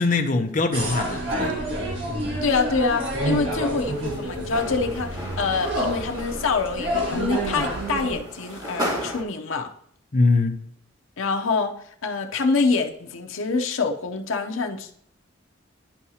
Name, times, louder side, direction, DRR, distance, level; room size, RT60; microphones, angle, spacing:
voice 1, 0.0-1.6 10.1-10.6, left 3 dB, 40° left, 0.7 m, -22 dB
sound 1, 0.7-8.2, right 1 dB, 65° right, 1.9 m, -28 dB
voice 2, 2.4-9.7 11.2-11.7 12.0-14.9, left 4 dB, 80° left, 0.7 m, -25 dB
sound 2, 3.8-9.2, equal, 20° right, 2.0 m, -35 dB
11.5 x 4.7 x 2.8 m
head